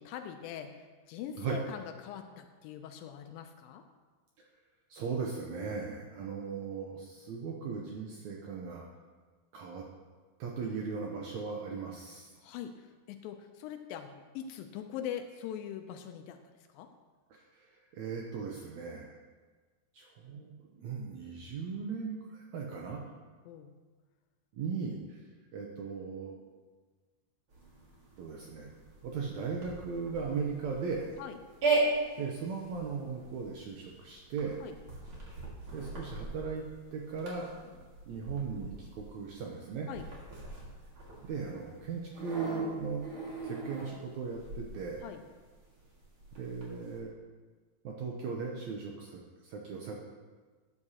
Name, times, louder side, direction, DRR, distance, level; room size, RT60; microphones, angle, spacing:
voice 1, 0.0-3.8 12.4-16.9 23.1-23.8 31.2-31.4 34.6-34.8 37.6-37.8 39.9-40.1 45.0-45.2, left 9 dB, 85° left, 6 dB, 2.3 m, -43 dB
voice 2, 4.9-8.9 9.5-9.8 10.4-12.3 17.3-19.2 19.9-20.5 20.8-23.0 24.5-25.2 25.5-26.3 28.2-28.7 29.0-31.1 32.2-34.6 35.7-36.6 36.9-37.5 38.1-39.9 41.2-43.0 43.4-45.0 46.3-47.1 47.8-50.0, right 5 dB, 75° right, -1 dB, 1.8 m, -38 dB
sound 1, 27.5-47.0, right 3 dB, 40° right, 2.5 m, -38 dB
12.5 x 9.7 x 2.9 m, 1.4 s
omnidirectional pair, 4.0 m